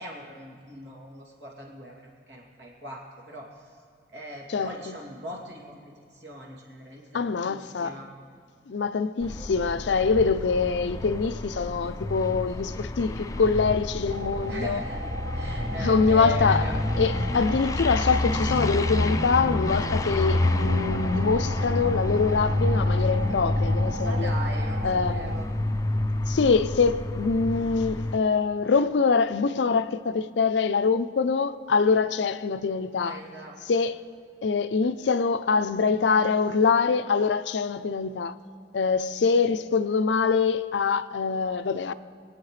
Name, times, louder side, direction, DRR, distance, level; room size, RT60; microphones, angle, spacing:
voice 1, 0.0-3.7 4.1-5.8 6.1-8.1 14.5-16.7 24.0-25.5 32.9-33.6, right 2 dB, 75° right, 2.7 m, -40 dB
voice 2, 4.5-4.9 7.1-8.0 8.7-14.8 15.8-16.7 17.0-24.3 24.8-25.3 26.3-33.2 33.7-34.0 34.4-38.3 38.7-41.9, left 5 dB, 85° left, 0.5 m, -24 dB
sound 1, 9.2-28.2, left 2 dB, 20° left, 0.4 m, -28 dB
sound 2, 14.1-25.4, right 2 dB, 55° right, 1.0 m, -38 dB
25.0 x 8.7 x 3.2 m
head